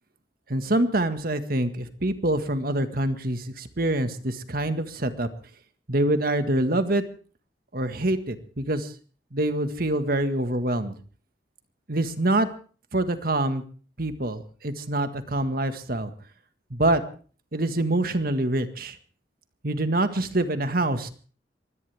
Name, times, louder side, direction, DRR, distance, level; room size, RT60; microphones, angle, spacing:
voice 1, 0.5-5.3 5.9-7.0 7.7-8.9 9.3-10.9 11.9-12.5 12.9-13.6 14.0-16.1 16.7-17.0 17.5-19.0 19.6-21.1, right 1 dB, 55° right, 9 dB, 1.7 m, -25 dB
23.0 x 17.5 x 3.5 m, 0.40 s
head